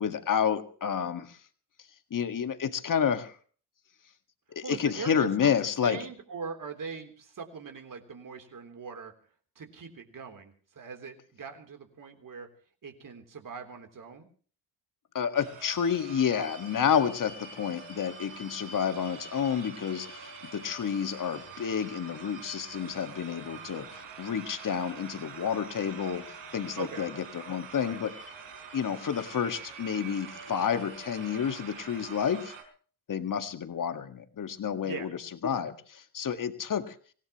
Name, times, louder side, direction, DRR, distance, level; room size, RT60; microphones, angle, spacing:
voice 1, 0.0-1.4 2.1-3.4 4.5-6.0 15.1-26.3 26.5-28.1 28.7-32.5 33.1-36.9, left 7 dB, 45° left, 9 dB, 1.9 m, -30 dB
voice 2, 4.6-5.5 5.8-9.1 9.6-12.5 12.8-14.3 26.8-27.1 27.7-28.0 34.8-35.1, right 5 dB, 45° right, 5 dB, 3.7 m, -41 dB
sound 1, 15.3-32.6, right 5 dB, 90° right, 4.5 m, -45 dB
25.5 x 17.0 x 3.1 m, 0.43 s
cardioid pair, 100°, 44 cm